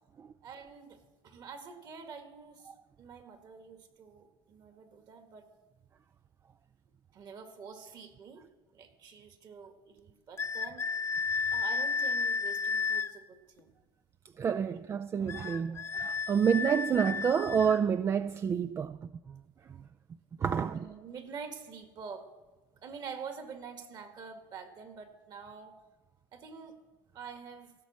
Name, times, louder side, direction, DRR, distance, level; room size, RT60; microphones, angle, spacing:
voice 1, 0.4-2.7 3.0-5.5 7.1-8.4 8.7-10.8 11.5-13.7 14.6-14.8 15.7-15.8 20.5-22.2 22.8-25.7 26.3-26.7 27.1-27.7, right 5 dB, 45° right, 1.9 m, -47 dB
sound 1, 10.4-13.1 15.3-17.8, left 5 dB, 25° left, 0.7 m, -32 dB
voice 2, 14.4-19.4 20.4-20.9, right 7 dB, 25° right, 0.3 m, -29 dB
16.5 x 7.1 x 6.3 m
supercardioid pair, 100°, 10 cm